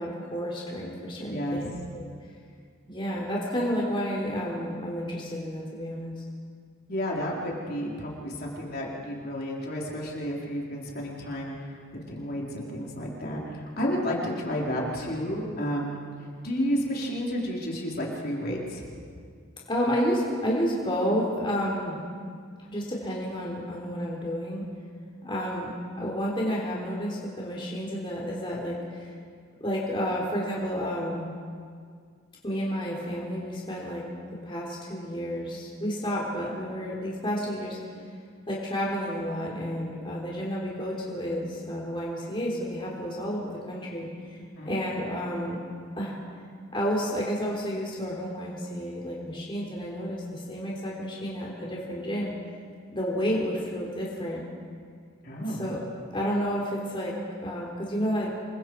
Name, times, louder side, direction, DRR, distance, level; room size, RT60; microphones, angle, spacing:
voice 1, 0.0-2.1 2.9-6.1 19.7-22.0 22.6-24.6 25.2-25.7 26.0-29.1 29.6-31.3 32.4-34.0 34.4-37.8 38.5-44.1 44.7-45.6 46.0-46.2 46.7-52.3 52.9-54.4 55.5-55.8 56.1-57.1 57.4-58.3, equal, 25° left, -4 dB, 3.5 m, -30 dB
voice 2, 1.3-1.7 6.9-11.7 12.1-16.0 16.4-18.8 44.6-44.8 55.2-55.7, equal, 45° left, -3 dB, 3.9 m, -31 dB
27.5 x 23.5 x 4.7 m, 2.1 s
head